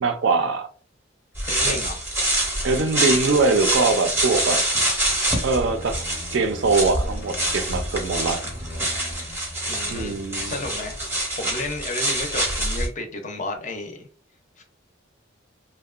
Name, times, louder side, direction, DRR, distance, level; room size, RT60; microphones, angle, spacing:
voice 1, 0.0-0.7 1.6-1.8 2.6-4.6 5.4-6.0 6.3-8.4 9.9-10.6, right 3 dB, 65° right, 0.4 m, -22 dB
sound 1, 1.4-12.9, right 1 dB, 10° right, 0.6 m, -25 dB
voice 2, 1.5-2.1 9.7-10.2 10.4-11.0 11.3-14.1 14.6-14.7, left 2 dB, 40° left, 0.5 m, -32 dB
sound 2, 5.6-11.0 11.3-11.6, equal, 85° left, 0.6 m, -40 dB
2.7 x 2.1 x 2.3 m
head